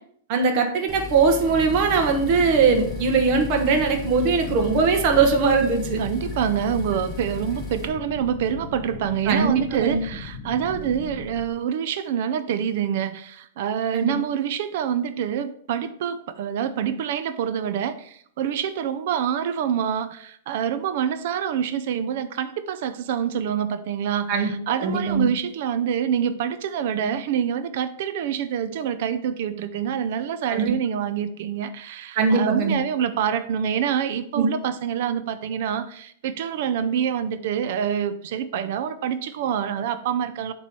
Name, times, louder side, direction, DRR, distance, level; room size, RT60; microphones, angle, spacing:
voice 1, 0.3-6.0 9.3-10.0 13.9-14.2 24.3-24.5 24.8-25.3 30.5-30.7 32.1-32.8 34.4-34.5, right 5 dB, 40° right, 3 dB, 1.1 m, -20 dB
sound 1, 0.9-7.9, left 3 dB, 5° left, 1.3 m, -36 dB
sound 2, 1.5-11.5, left 4 dB, 30° left, 0.9 m, -38 dB
voice 2, 6.0-40.5, right 8 dB, 55° right, 12 dB, 0.4 m, -26 dB
7.2 x 3.1 x 5.3 m, 0.63 s
supercardioid pair, 160°, 0 cm